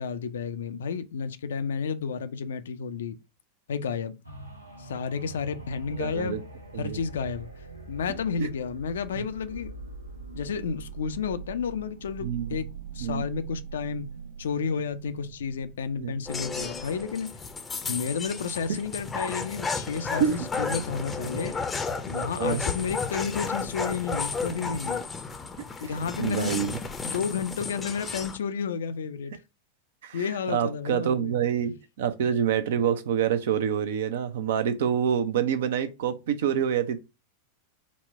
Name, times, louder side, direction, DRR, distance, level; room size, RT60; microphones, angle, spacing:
voice 1, 0.0-3.2 3.7-4.2 4.8-6.4 6.8-7.5 7.9-9.7 10.3-12.7 12.9-14.1 14.4-17.3 17.8-21.6 22.0-25.0 25.8-26.6 27.0-29.3 30.1-31.4, left 6 dB, 65° left, 0.4 m, -31 dB
sound 1, 4.2-17.9 18.4-18.5, right 4 dB, 90° right, 0.7 m, -43 dB
voice 2, 6.0-6.4 6.7-7.0 8.4-8.5 12.2-12.6 13.0-13.3 16.0-16.1 20.1-20.5 22.2-22.6 26.2-26.8 30.0-37.0, right 8 dB, 55° right, 0.5 m, -27 dB
sound 2, 16.3-28.4, left 4 dB, 15° left, 0.5 m, -33 dB
4.1 x 2.2 x 4.1 m
figure-of-eight pair, 90°, 0 cm